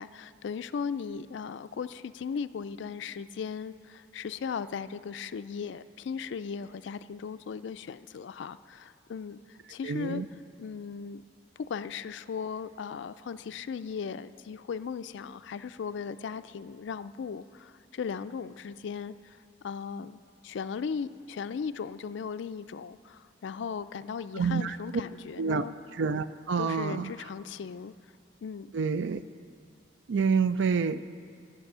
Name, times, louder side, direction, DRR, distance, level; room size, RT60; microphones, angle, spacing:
voice 1, 0.0-10.2 10.6-11.2 11.6-19.4 19.6-25.8 26.6-27.9 28.4-28.7, left 6 dB, 70° left, 13 dB, 0.3 m, -37 dB
voice 2, 9.8-10.3 24.4-24.8 25.4-25.6 26.0-27.1 28.7-29.2 30.1-31.0, right 5 dB, 70° right, 13 dB, 0.4 m, -27 dB
12.0 x 8.7 x 6.7 m, 2.2 s
head